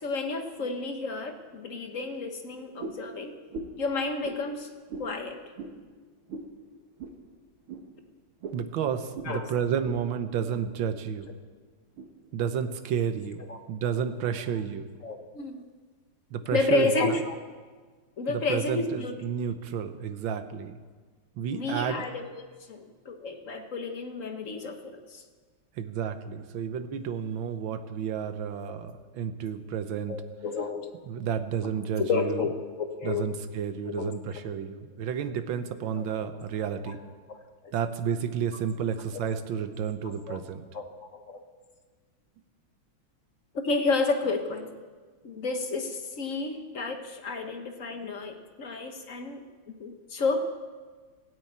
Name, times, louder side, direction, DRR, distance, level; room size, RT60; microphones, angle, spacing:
voice 1, 0.0-3.3 3.8-4.7 5.0-5.4 9.2-9.4 13.5-13.6 15.0-15.6 16.5-17.4 18.2-19.2 21.5-25.2 30.1-30.9 32.0-32.5 32.8-33.3 33.9-34.1 35.9-36.1 36.9-37.0 37.3-37.4 37.6-37.7 40.3-40.4 40.7-40.8 41.1-41.4 43.5-44.7 45.2-50.4, left 3 dB, 45° left, 5 dB, 1.3 m, -31 dB
sound 1, 2.8-3.1 3.5-3.8 4.2-4.4 4.9-5.1 5.6-5.8 6.3-6.5 7.0-7.2 7.7-7.8 8.4-8.6 9.1-9.3 9.8-10.0 10.3-10.7 11.2-11.4 12.0-12.1, right 3 dB, 90° right, 2.2 m, -39 dB
voice 2, 8.5-11.3 12.3-13.4 13.7-14.9 16.3-17.2 18.3-20.8 21.4-22.0 25.8-30.2 31.1-32.4 33.0-37.0 37.7-40.6, right 7 dB, 75° right, 10 dB, 1.6 m, -31 dB
16.5 x 8.9 x 8.7 m, 1.5 s
omnidirectional pair, 2.3 m